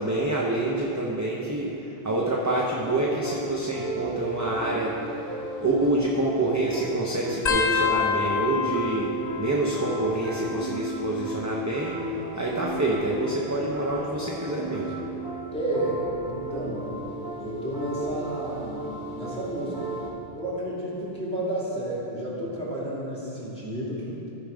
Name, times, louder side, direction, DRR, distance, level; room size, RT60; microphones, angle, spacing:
voice 1, 0.0-5.0 5.6-12.0 12.4-15.0, right 2 dB, 20° right, -3 dB, 0.6 m, -27 dB
sound 1, 2.7-20.1, right 2 dB, 90° right, 1.9 m, -35 dB
sound 2, 7.5-10.6 10.9-11.5 12.5-14.0 14.6-14.9 16.2-16.5 18.0-18.1, left 6 dB, 50° left, 0.7 m, -30 dB
voice 2, 15.5-16.9 17.4-19.9 20.3-24.1, right 1 dB, 5° left, -8 dB, 2.3 m, -31 dB
13.5 x 4.9 x 5.0 m, 3.0 s
omnidirectional pair, 1.1 m